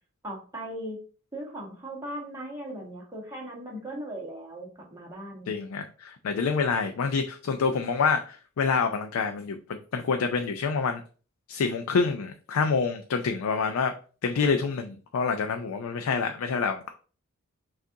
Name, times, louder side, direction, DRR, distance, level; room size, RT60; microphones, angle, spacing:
voice 1, 0.2-1.0 1.3-5.6, right 1 dB, 15° right, -2 dB, 1.3 m, -38 dB
voice 2, 5.5-11.0 11.5-13.9 14.2-16.9, left 5 dB, 70° left, 6 dB, 0.4 m, -27 dB
5.9 x 2.5 x 2.7 m, 0.39 s
head